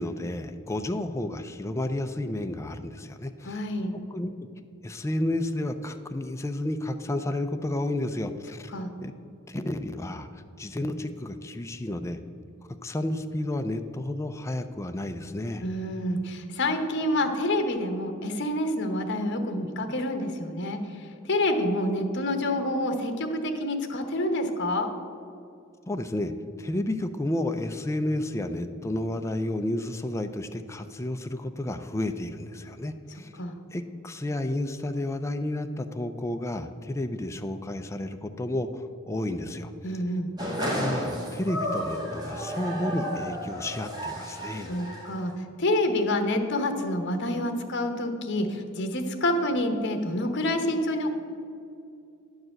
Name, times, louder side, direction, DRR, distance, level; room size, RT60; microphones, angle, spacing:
voice 1, 0.0-3.6 3.9-4.3 4.8-8.7 9.0-9.1 9.5-10.3 10.6-12.2 12.8-15.6 25.9-26.3 26.6-33.3 33.7-39.7 40.7-44.7, left 1 dB, 15° left, 7 dB, 0.4 m, -31 dB
voice 2, 3.4-4.0 8.7-8.9 15.6-20.8 21.3-24.9 33.4-33.6 39.8-40.3 44.7-45.3 45.6-51.1, left 1 dB, 55° left, 6 dB, 1.0 m, -27 dB
sound 1, 40.4-45.2, equal, 20° right, 1.7 m, -32 dB
11.0 x 4.8 x 7.6 m, 2.5 s
head